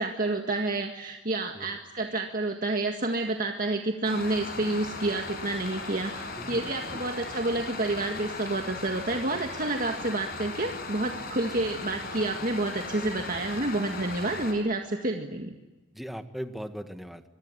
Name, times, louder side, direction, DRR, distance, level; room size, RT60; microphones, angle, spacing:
voice 1, 0.0-15.5, right 2 dB, 45° right, 4 dB, 1.9 m, -29 dB
sound 1, 4.0-14.5, left 3 dB, 55° left, 6.0 m, -38 dB
voice 2, 6.4-7.1 11.6-11.7 13.8-13.9 15.9-17.2, equal, ahead, 8 dB, 1.7 m, -40 dB
25.5 x 23.0 x 9.8 m, 1.2 s
head